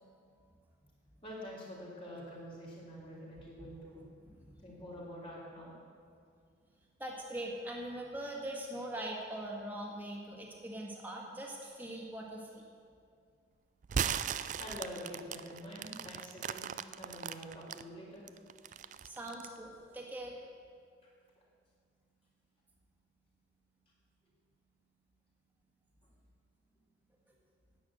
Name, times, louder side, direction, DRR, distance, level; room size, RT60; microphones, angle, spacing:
voice 1, 1.2-4.0 4.6-5.7 14.6-16.7 17.0-18.3, equal, 30° left, -4 dB, 3.4 m, -46 dB
voice 2, 7.0-12.6 19.0-20.4, right 1 dB, 10° right, -2 dB, 1.8 m, -42 dB
sound 1, 13.8-17.8 18.3-19.6, right 8 dB, 40° right, 0.3 m, -37 dB
10.5 x 9.6 x 7.9 m, 2.2 s
head